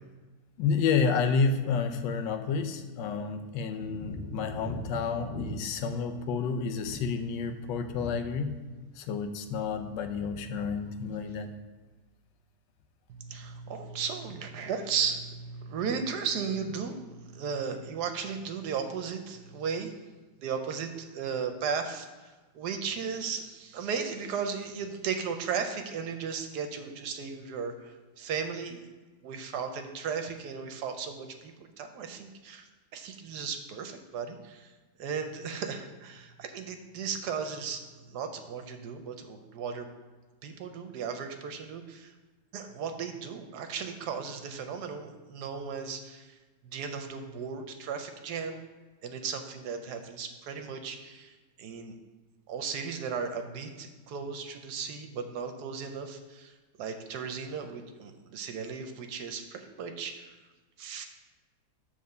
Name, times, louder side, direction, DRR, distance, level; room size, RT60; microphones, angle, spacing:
voice 1, 0.6-8.6 9.0-11.5, left 5 dB, 80° left, 8 dB, 1.3 m, -30 dB
sound 1, 3.8-8.8 9.0-9.7 9.9-10.7 11.0-11.4, equal, 20° left, 2.5 m, -42 dB
voice 2, 13.1-19.9 20.4-22.1 22.5-28.8 29.2-34.7 35.0-39.9 40.4-42.1 42.5-46.3 46.7-48.6 49.0-52.0 52.5-56.5 56.8-60.2 60.8-61.1, right 6 dB, 70° right, 6 dB, 1.1 m, -36 dB
7.2 x 3.5 x 6.4 m, 1.3 s
omnidirectional pair, 1.9 m